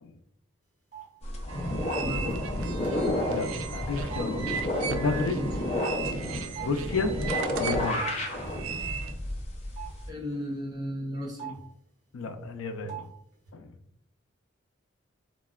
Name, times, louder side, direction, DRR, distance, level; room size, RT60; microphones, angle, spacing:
sound 1, 0.9-1.0 2.3-2.4 2.6-3.1 4.1-4.2 5.9-6.0 6.5-8.2 8.4-8.6 9.7-9.9 11.4-11.7 12.9-13.1 13.3-13.5, right 10 dB, 40° right, 1.2 m, -41 dB
sound 2, 1.2-10.1, left 1 dB, 30° left, 0.5 m, -31 dB
sound 3, 1.5-9.1, right 6 dB, 90° right, 0.3 m, -37 dB
voice 1, 2.0-2.5 5.3-5.5 10.1-11.5, equal, 20° right, -1 dB, 0.5 m, -35 dB
voice 2, 3.3-4.4 4.9-5.4 6.3-7.2 7.6-8.1 12.1-13.1 13.5-13.7, left 3 dB, 85° left, 6 dB, 0.4 m, -32 dB
3.5 x 2.1 x 2.3 m, 0.69 s
head